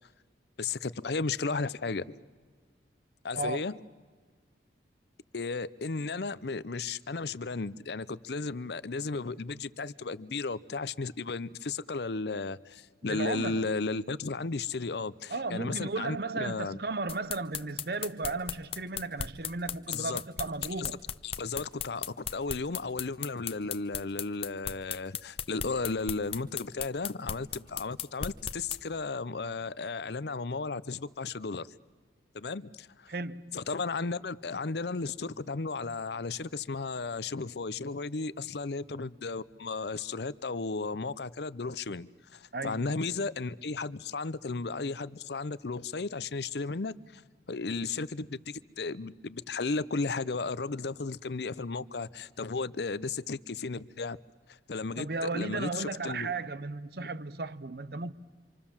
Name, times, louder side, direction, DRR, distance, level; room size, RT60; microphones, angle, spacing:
voice 1, 0.6-2.2 3.2-3.8 5.3-16.8 19.9-20.2 20.8-20.9 21.2-31.7 32.3-33.1 33.5-47.2 47.5-54.2 54.5-56.3 57.0-57.1, left 4 dB, 65° left, 0.7 m, -34 dB
voice 2, 3.3-3.7 13.0-13.7 15.3-21.0 33.1-33.6 42.5-42.8 55.0-58.1, right 3 dB, 60° right, 0.8 m, -35 dB
sound 1, 17.1-28.8, left 8 dB, 30° left, 0.8 m, -36 dB
27.0 x 26.0 x 7.2 m
head